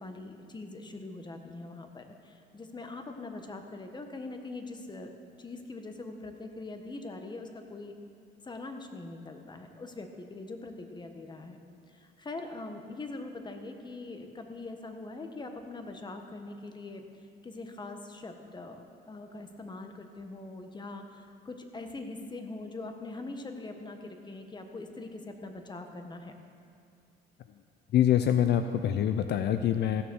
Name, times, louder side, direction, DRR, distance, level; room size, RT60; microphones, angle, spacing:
voice 1, 0.0-5.1 5.4-7.9 8.4-11.6 11.9-17.0 17.4-18.8 19.1-26.3, left 2 dB, 25° left, 5 dB, 1.3 m, -42 dB
voice 2, 27.9-30.0, left 10 dB, 65° left, 9 dB, 0.5 m, -25 dB
15.0 x 7.0 x 6.3 m, 2.3 s
cardioid pair, 100°, 19 cm